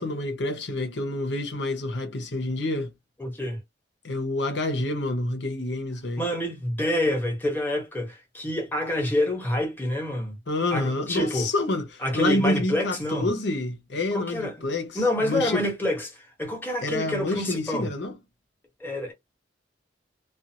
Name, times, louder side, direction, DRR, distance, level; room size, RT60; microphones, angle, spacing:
voice 1, 0.0-2.9 4.0-6.3 10.5-15.7 16.8-18.2, left 2 dB, 80° left, 0.9 m, -28 dB
voice 2, 3.2-3.6 6.2-10.4 10.7-11.5 12.0-13.3 14.1-14.7 14.9-17.9 18.8-19.1, left 1 dB, 10° left, 1.0 m, -27 dB
2.5 x 2.4 x 2.8 m
head